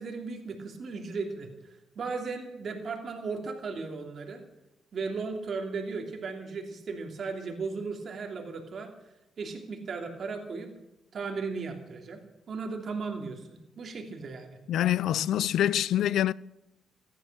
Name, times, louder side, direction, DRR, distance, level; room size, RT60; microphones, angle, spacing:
voice 1, 0.0-4.4 4.9-8.9 9.4-10.7 11.1-12.2 12.5-14.6, right 4 dB, 50° right, 3.0 m, -36 dB
voice 2, 14.7-16.3, left 11 dB, 75° left, 0.5 m, -25 dB
16.0 x 12.5 x 7.4 m
cardioid pair, 90°, 0 cm